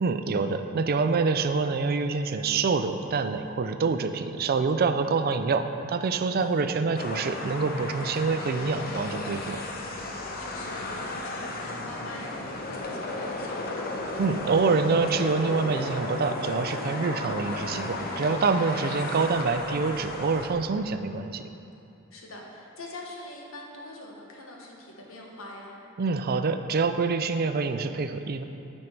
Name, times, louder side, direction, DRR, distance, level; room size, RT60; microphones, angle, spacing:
voice 1, 0.0-9.6 14.2-21.4 26.0-28.4, right 4 dB, 50° right, 9 dB, 0.4 m, -26 dB
voice 2, 6.4-6.8 10.4-14.0 18.8-19.4 22.1-25.7, left 1 dB, 90° left, -1 dB, 1.3 m, -43 dB
sound 1, 6.9-20.5, left 2 dB, 45° left, 0.8 m, -34 dB
9.7 x 5.4 x 4.5 m, 2.7 s
head